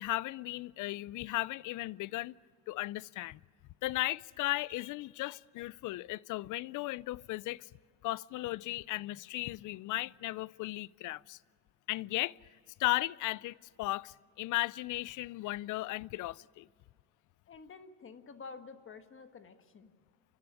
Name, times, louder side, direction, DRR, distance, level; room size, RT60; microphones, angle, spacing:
voice 1, 0.0-2.3 2.7-3.4 3.8-7.7 8.0-11.4 11.9-12.4 12.8-16.7, left 18 dB, 60° left, 0.5 m, -36 dB
voice 2, 17.5-19.9, left 4 dB, 35° left, 1.4 m, -50 dB
30.0 x 11.5 x 9.9 m
cardioid pair, 115°, 34 cm